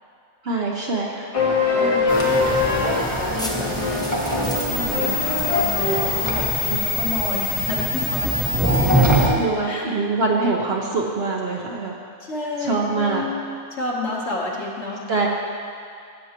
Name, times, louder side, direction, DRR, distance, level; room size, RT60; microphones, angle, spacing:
voice 1, 0.4-1.3 6.7-6.8 8.2-8.4 9.1-11.9 12.6-13.2 15.1-15.3, right 3 dB, 50° right, -1 dB, 1.0 m, -24 dB
sound 1, 1.3-6.4, left 3 dB, 30° left, 0.9 m, -23 dB
voice 2, 1.7-8.4 8.9-9.1 9.4-10.1 12.2-15.3, left 3 dB, 50° left, -2 dB, 1.4 m, -31 dB
sound 2, 2.1-9.3, right 1 dB, 15° right, 1.2 m, -25 dB
sound 3, 2.9-9.3, left 4 dB, 5° left, 0.5 m, -28 dB
15.0 x 7.9 x 2.9 m, 2.4 s
omnidirectional pair, 1.5 m